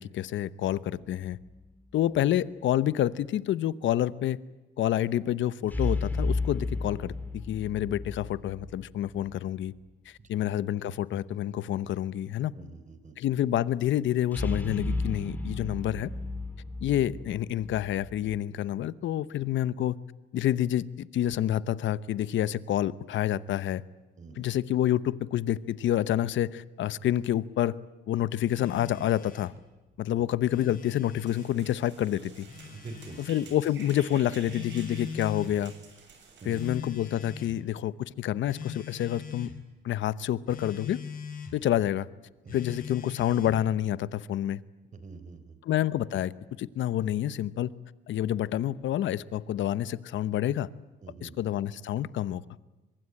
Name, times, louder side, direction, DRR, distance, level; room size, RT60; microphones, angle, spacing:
voice 1, 0.0-1.4 1.9-4.4 4.8-9.7 10.1-12.5 13.2-16.1 16.8-20.0 20.3-23.8 24.4-27.8 28.1-29.5 30.0-32.5 33.2-35.7 36.4-39.5 39.8-41.0 41.5-42.1 42.5-44.6 45.7-46.3 46.6-47.7 48.1-50.7 51.2-52.4, left 12 dB, 75° left, 0.9 m, -28 dB
sound 1, 1.0-1.6 5.7-9.3 14.3-18.4, left 3 dB, 10° left, 3.8 m, -34 dB
voice 2, 12.5-13.2 24.2-24.5 30.1-30.2 32.7-33.2 36.4-36.8 42.4-42.6 44.9-45.6 51.0-51.5, right 4 dB, 40° right, 4.0 m, -46 dB
Telephone, 28.5-29.6 30.3-31.5 32.5-33.5 34.5-35.6 36.5-37.6 38.5-39.6 40.5-41.6 42.5-43.6, left 5 dB, 45° left, 4.8 m, -41 dB
sound 2, 31.3-36.8, right 5 dB, 65° right, 7.3 m, -51 dB
24.5 x 22.5 x 8.7 m
cardioid pair, 90°, 20 cm